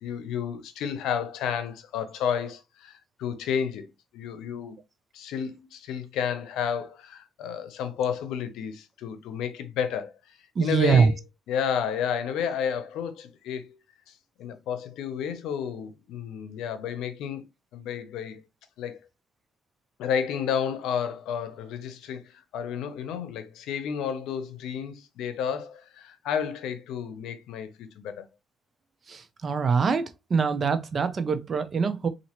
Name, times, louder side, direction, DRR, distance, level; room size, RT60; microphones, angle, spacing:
voice 1, 0.0-4.8 5.1-13.8 14.4-18.4 18.8-19.0 20.0-28.2, left 8 dB, 90° left, 0.6 m, -31 dB
voice 2, 10.6-11.1 29.4-30.0 30.3-32.1, right 5 dB, 45° right, 0.7 m, -23 dB
4.1 x 2.7 x 2.9 m
cardioid pair, 90°, 0 cm